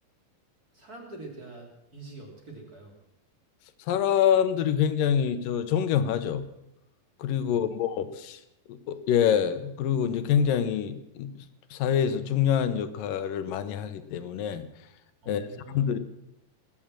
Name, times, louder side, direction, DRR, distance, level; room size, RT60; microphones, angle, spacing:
voice 1, 0.7-2.9 7.4-7.9 15.2-15.9, right 2 dB, 25° right, 1 dB, 3.0 m, -45 dB
voice 2, 3.9-6.4 7.2-8.4 8.7-11.3 11.7-14.7 15.3-15.5 15.7-16.0, left 9 dB, 75° left, 11 dB, 2.5 m, -26 dB
20.0 x 8.6 x 7.5 m, 0.83 s
omnidirectional pair, 4.3 m